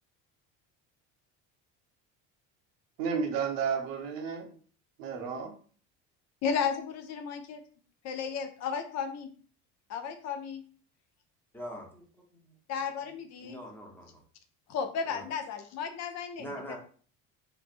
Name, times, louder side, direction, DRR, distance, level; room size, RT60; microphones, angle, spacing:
voice 1, 3.0-4.6 5.0-5.6, right 6 dB, 75° right, 0.8 m, -32 dB
voice 2, 6.4-7.6 8.0-9.3 9.9-10.6 12.7-13.6 14.7-16.8, left 6 dB, 50° left, 0.6 m, -34 dB
voice 3, 11.5-12.1 12.3-12.5 12.8-13.1 13.4-14.2 15.1-15.2 16.4-16.8, equal, 5° left, 0.8 m, -43 dB
3.3 x 3.1 x 2.5 m
cardioid pair, 140°, 34 cm